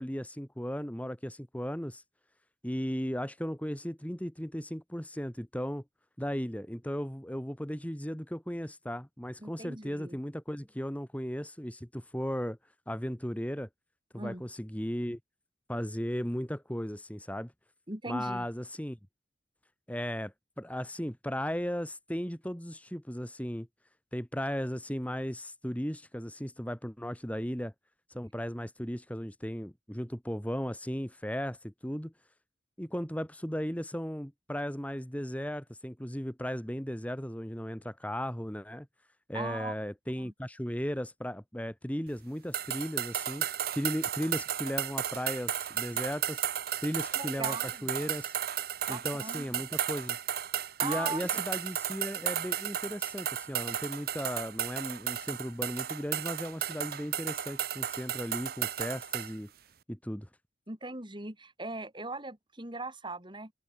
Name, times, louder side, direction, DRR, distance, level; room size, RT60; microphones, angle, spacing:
voice 1, 0.0-2.0 2.6-5.8 6.2-12.6 12.9-13.7 14.1-15.2 15.7-17.5 18.1-19.0 19.9-23.7 24.1-27.7 28.1-32.1 32.8-38.9 39.3-43.5 43.8-46.4 46.8-47.6 47.8-48.3 48.9-50.2 50.8-59.5 59.9-60.3, equal, 10° left, 2.7 m, -36 dB
voice 2, 9.4-10.2 14.2-14.4 17.9-18.5 39.3-39.8 40.2-40.3 47.1-47.9 48.9-49.6 50.8-51.4 60.7-63.5, right 2 dB, 25° right, 3.9 m, -39 dB
sound 1, 42.5-59.3, right 10 dB, 55° right, 1.0 m, -34 dB
open air
head